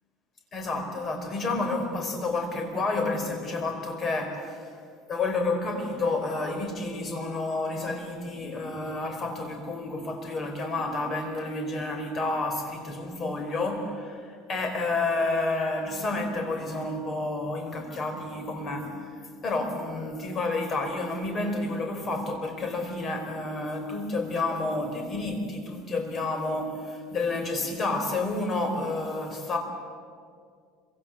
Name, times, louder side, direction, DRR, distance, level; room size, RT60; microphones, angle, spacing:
voice 1, 0.5-4.7 5.1-29.6, left 2 dB, 25° left, 4 dB, 4.6 m, -30 dB
26.0 x 25.0 x 7.8 m, 2.1 s
cardioid pair, 155°, 0 cm